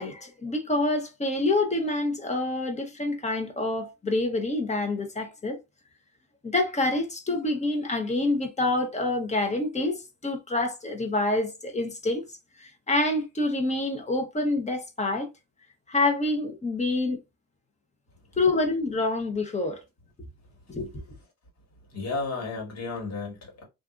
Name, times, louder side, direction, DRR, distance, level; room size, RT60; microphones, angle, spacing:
voice 1, 0.0-5.6 6.4-12.2 12.6-15.3 15.9-17.2 18.4-19.8 20.7-21.0, left 2 dB, 25° left, 0.8 m, -27 dB
voice 2, 21.9-23.6, left 3 dB, 60° left, 1.6 m, -33 dB
2.6 x 2.5 x 2.4 m
cardioid pair, 90°, 30 cm